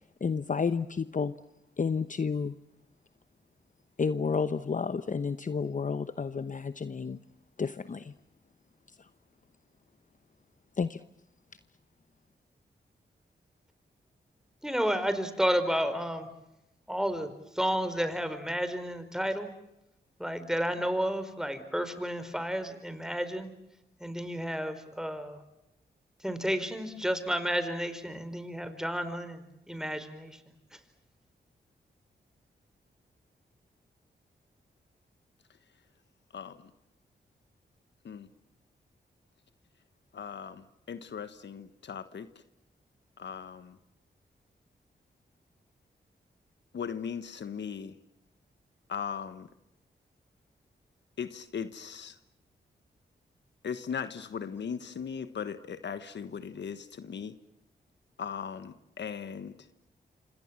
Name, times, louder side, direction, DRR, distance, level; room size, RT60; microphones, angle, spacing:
voice 1, 0.2-1.3 1.8-2.5 4.0-7.2 7.6-8.1 9.0-9.1 10.8-11.0, left 5 dB, 45° left, 12 dB, 0.9 m, -31 dB
voice 2, 14.6-16.3 16.9-19.5 20.2-23.5 24.0-25.4 26.2-30.4, equal, 5° right, 10 dB, 4.6 m, -31 dB
voice 3, 36.3-36.7 38.0-38.3 40.1-42.3 43.2-43.8 46.7-47.9 48.9-49.5 51.2-52.1 53.6-57.3 58.2-59.6, left 7 dB, 75° left, 12 dB, 1.4 m, -38 dB
27.5 x 26.0 x 7.5 m, 0.87 s
cardioid pair, 50°, 19 cm